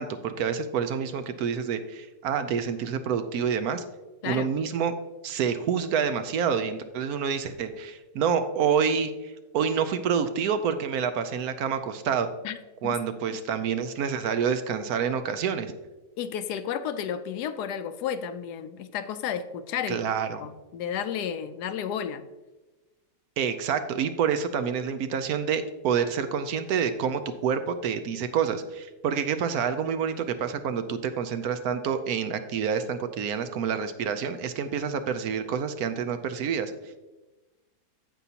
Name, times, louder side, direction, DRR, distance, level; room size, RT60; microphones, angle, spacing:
voice 1, 0.0-3.8 4.2-4.9 5.2-12.3 12.8-15.7 19.9-20.4 23.4-37.0, right 7 dB, 70° right, 9 dB, 1.0 m, -28 dB
voice 2, 16.2-20.0 20.4-22.2, left 8 dB, 75° left, 11 dB, 1.1 m, -32 dB
15.0 x 5.4 x 2.8 m, 1.1 s
omnidirectional pair, 1.8 m